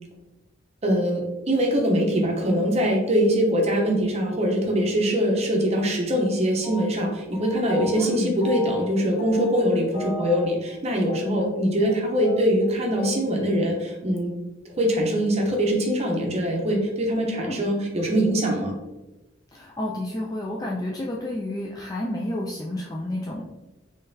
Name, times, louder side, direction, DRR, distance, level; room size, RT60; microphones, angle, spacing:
voice 1, 0.8-14.3 14.8-18.7, equal, 35° right, 0 dB, 0.7 m, -23 dB
sound 1, 6.6-8.0 8.4-8.9 9.2-9.7 9.9-10.8 11.1-11.2 11.5-11.6 11.8-11.9 12.2-13.2, left 1 dB, 50° left, 1.5 m, -36 dB
voice 2, 7.9-8.3 17.4-17.6 19.5-23.4, left 1 dB, 20° left, -2 dB, 0.3 m, -30 dB
3.7 x 3.2 x 2.7 m, 1.0 s
head